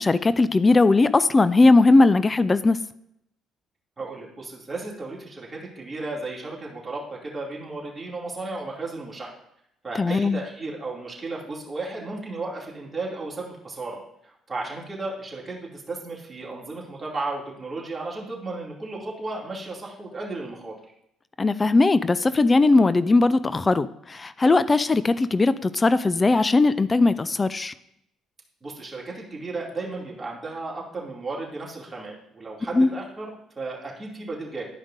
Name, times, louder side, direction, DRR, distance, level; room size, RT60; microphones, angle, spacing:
voice 1, 0.0-2.8 10.0-10.4 21.4-27.7 32.7-32.9, left 3 dB, 25° left, 15 dB, 0.4 m, -19 dB
voice 2, 4.0-9.4 9.8-20.7 28.6-34.7, right 3 dB, 25° right, -4 dB, 2.7 m, -34 dB
11.5 x 5.0 x 2.7 m, 0.77 s
supercardioid pair, 65°, 0 cm